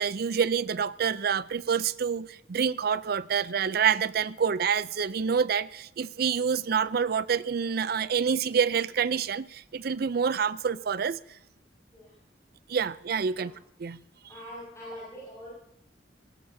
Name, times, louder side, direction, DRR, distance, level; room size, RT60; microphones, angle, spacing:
voice 1, 0.0-11.2 12.7-13.5 13.8-14.0, right 6 dB, 55° right, 17 dB, 0.5 m, -27 dB
voice 2, 14.3-15.5, equal, 15° left, -8 dB, 5.7 m, -43 dB
19.0 x 17.0 x 2.8 m, 0.77 s
head